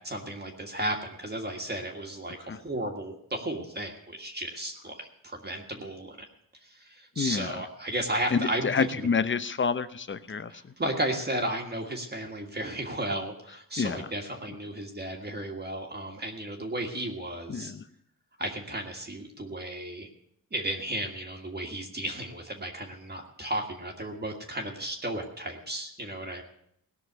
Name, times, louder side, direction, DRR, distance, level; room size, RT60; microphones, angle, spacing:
voice 1, 0.0-6.2 6.6-9.1 10.5-17.7 18.4-20.1 20.5-26.4, right 1 dB, 30° right, 1 dB, 1.7 m, -34 dB
voice 2, 7.2-7.6 8.3-10.5 13.8-14.1 17.5-17.8, left 5 dB, 35° left, 13 dB, 0.7 m, -28 dB
18.0 x 6.2 x 8.0 m, 0.70 s
wide cardioid pair, 110°, 35 cm